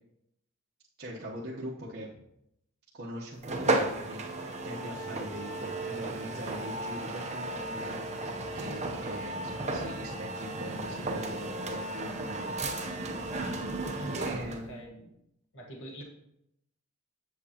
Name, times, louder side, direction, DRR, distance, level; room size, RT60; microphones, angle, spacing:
voice 1, 1.0-2.2 2.9-8.0 8.5-12.5 14.1-15.1, equal, 45° right, -6 dB, 1.1 m, -42 dB
sound 1, 3.4-14.7, right 2 dB, 30° right, 0.7 m, -34 dB
voice 2, 14.5-14.9 15.5-16.0, right 1 dB, 60° left, 0 dB, 1.4 m, -43 dB
7.8 x 7.4 x 2.9 m, 0.79 s
head